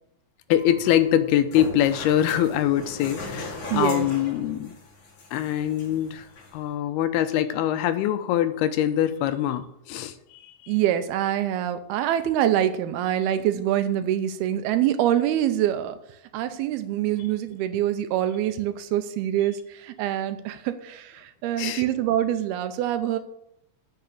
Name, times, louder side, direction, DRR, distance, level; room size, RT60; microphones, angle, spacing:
voice 1, 0.5-4.7 5.3-6.3 6.5-10.7 21.6-21.8, left 11 dB, 90° left, 10 dB, 2.7 m, -24 dB
sound 1, 0.6-6.6, left 3 dB, 55° left, 3.8 m, -39 dB
voice 2, 3.7-4.1 10.7-16.0 16.3-23.2, right 11 dB, 85° right, 10 dB, 2.6 m, -25 dB
8.6 x 6.0 x 8.2 m, 0.77 s
omnidirectional pair, 4.5 m